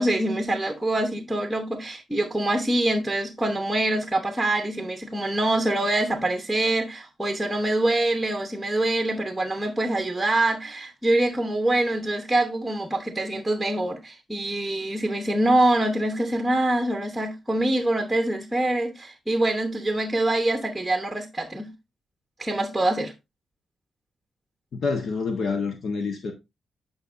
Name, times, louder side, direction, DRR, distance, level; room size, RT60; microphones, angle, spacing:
voice 1, 0.0-21.7 22.4-23.1, right 1 dB, 5° right, 1.0 m, -25 dB
voice 2, 24.7-26.3, left 4 dB, 65° left, 1.2 m, -27 dB
8.9 x 5.3 x 2.6 m
cardioid pair, 105°, 0 cm